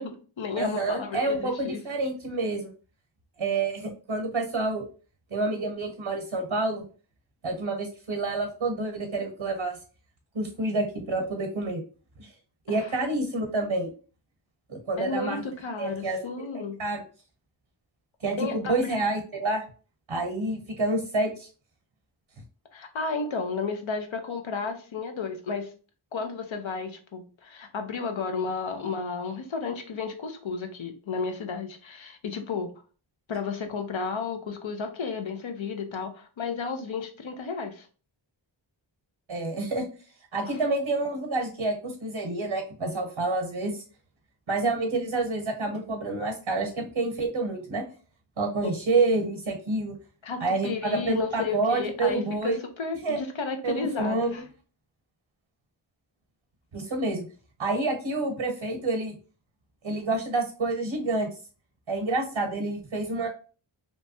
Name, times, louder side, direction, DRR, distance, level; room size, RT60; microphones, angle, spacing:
voice 1, 0.0-1.8 12.7-13.0 15.0-16.8 18.4-18.9 22.7-25.7 26.1-32.7 33.3-37.9 40.4-40.6 48.6-48.8 50.2-54.4, left 4 dB, 75° left, 6 dB, 0.6 m, -33 dB
voice 2, 0.6-2.7 3.4-4.9 5.3-6.8 7.4-9.7 10.3-11.8 12.2-12.3 12.7-13.9 14.7-15.4 15.8-16.2 16.8-17.0 18.2-19.6 20.1-21.5 39.3-39.8 40.3-43.8 44.5-47.8 48.4-49.9 50.4-52.6 53.0-53.2 53.6-54.3 56.7-57.3 57.6-59.1 59.8-61.3 61.9-63.3, right 2 dB, 75° right, 4 dB, 0.8 m, -28 dB
3.0 x 2.2 x 2.6 m, 0.37 s
wide cardioid pair, 50°, 47 cm